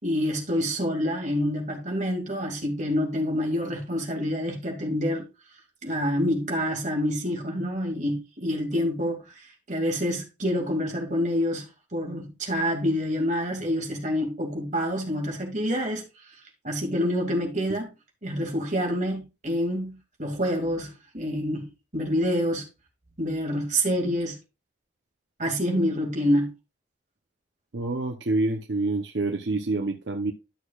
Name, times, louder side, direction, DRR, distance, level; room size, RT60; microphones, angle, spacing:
voice 1, 0.0-5.2 5.8-16.0 16.6-17.9 18.2-22.7 23.2-24.4 25.4-26.5, equal, 40° right, 2.3 m, -27 dB
voice 2, 27.7-30.3, right 2 dB, 75° right, 0.8 m, -27 dB
12.0 x 6.5 x 2.4 m
head